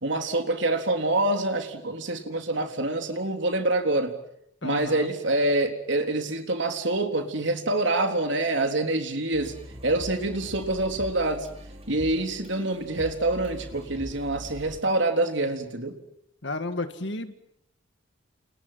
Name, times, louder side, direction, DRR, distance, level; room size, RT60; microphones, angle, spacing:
voice 1, 0.0-4.2 4.6-9.5 9.8-11.5 11.9-16.0, right 2 dB, 65° right, 5 dB, 3.7 m, -26 dB
voice 2, 4.6-5.1 16.4-17.5, left 2 dB, 60° left, 9 dB, 2.2 m, -32 dB
sound 1, 9.3-14.8, equal, 30° right, 4.5 m, -42 dB
30.0 x 28.5 x 5.9 m, 0.78 s
head